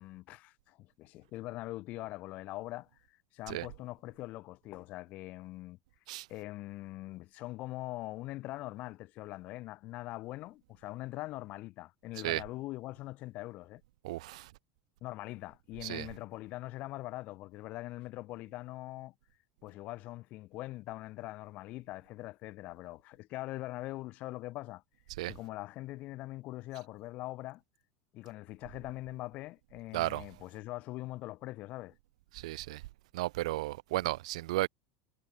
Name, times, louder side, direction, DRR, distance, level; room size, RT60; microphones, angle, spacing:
voice 1, 0.0-5.8 6.3-13.8 15.0-19.1 19.6-24.8 25.3-27.6 28.1-31.9, left 18 dB, 45° left, 5.2 m, -42 dB
voice 2, 14.0-14.5 15.8-16.1 25.2-25.3 29.9-30.2 32.3-32.8 33.1-34.7, right 18 dB, 85° right, 0.7 m, -34 dB
supercardioid pair, 155°, 3 cm